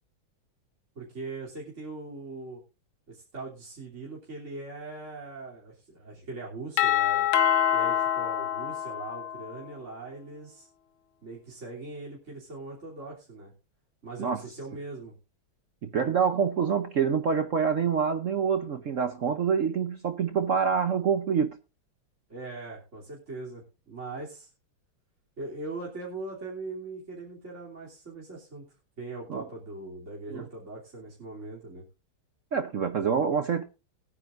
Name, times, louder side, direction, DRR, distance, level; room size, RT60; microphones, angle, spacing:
voice 1, 0.9-2.6 3.1-7.3 7.7-10.7 11.2-13.5 14.0-15.1 22.3-24.5 25.4-28.6 29.0-31.8, right 3 dB, 35° right, 3.4 m, -40 dB
Doorbell, 6.8-9.6, left 10 dB, 80° left, 1.8 m, -25 dB
voice 2, 15.8-21.6 29.3-29.4 30.3-30.4 32.5-33.6, right 6 dB, 65° right, 0.7 m, -26 dB
20.5 x 9.7 x 2.5 m
omnidirectional pair, 2.3 m